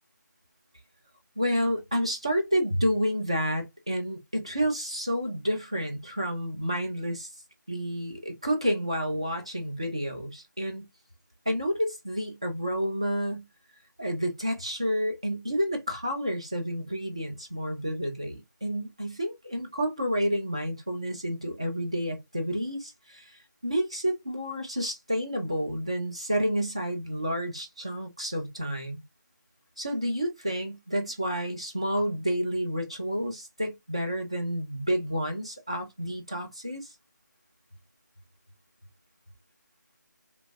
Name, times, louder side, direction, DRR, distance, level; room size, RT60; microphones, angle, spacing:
voice 1, 1.4-7.3 7.7-10.9 11.5-13.5 14.0-29.0 29.8-36.9, equal, 15° right, 0.3 m, -30 dB
2.9 x 2.1 x 2.5 m
figure-of-eight pair, 175°, 10 cm